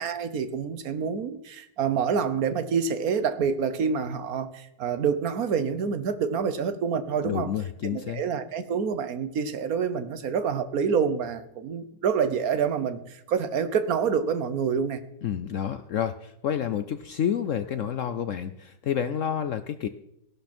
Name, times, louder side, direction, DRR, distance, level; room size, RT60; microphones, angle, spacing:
voice 1, 0.0-7.5 7.9-15.0, right 6 dB, 55° right, 11 dB, 1.4 m, -27 dB
voice 2, 7.2-8.2 15.2-19.9, left 9 dB, 70° left, 11 dB, 0.7 m, -29 dB
16.0 x 12.0 x 4.4 m, 0.79 s
omnidirectional pair, 2.0 m